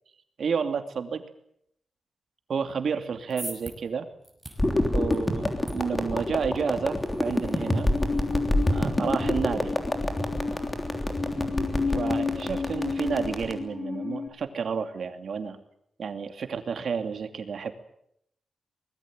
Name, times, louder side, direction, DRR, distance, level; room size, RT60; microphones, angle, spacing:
voice 1, 0.4-1.2 2.5-4.1 4.9-7.9 8.7-9.7 11.8-15.6 16.0-17.7, right 6 dB, 65° right, 7 dB, 2.7 m, -30 dB
sound 1, 3.0-9.3, right 1 dB, 5° right, 5.8 m, -46 dB
sound 2, 4.6-13.5, left 1 dB, 20° left, 3.3 m, -28 dB
Musical instrument, 7.4-14.3, left 4 dB, 35° left, 4.8 m, -32 dB
24.0 x 20.5 x 9.0 m, 0.76 s
wide cardioid pair, 145°, 0 cm